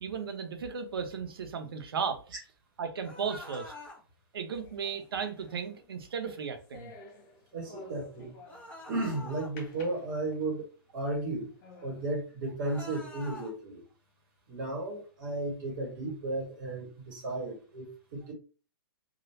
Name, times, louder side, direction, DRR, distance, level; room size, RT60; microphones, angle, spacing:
voice 1, 0.0-2.2 2.8-3.7 4.3-6.9, right 6 dB, 75° right, 6 dB, 0.9 m, -35 dB
sound 1, 3.0-4.0 8.5-9.5 12.6-13.5, left 2 dB, 10° left, 1.2 m, -45 dB
sound 2, 4.5-8.9 9.6-10.7 11.2-11.3 11.6-12.1, left 3 dB, 35° left, 1.2 m, -53 dB
voice 2, 7.5-8.3 8.9-11.5 11.8-13.8 14.5-18.3, right 2 dB, 55° right, -2 dB, 1.5 m, -34 dB
3.1 x 2.6 x 2.7 m, 0.36 s
hypercardioid pair, 130°, 13 cm